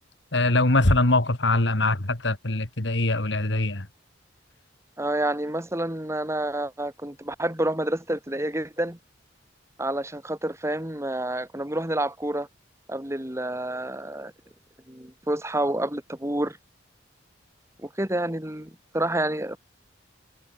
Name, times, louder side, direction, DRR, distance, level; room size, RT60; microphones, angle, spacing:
voice 1, 0.3-3.9, left 2 dB, 65° left, 2.5 m, -22 dB
voice 2, 5.0-9.0 9.8-12.5 12.9-14.3 14.9-16.6 17.8-19.6, right 1 dB, 15° right, 2.7 m, -28 dB
head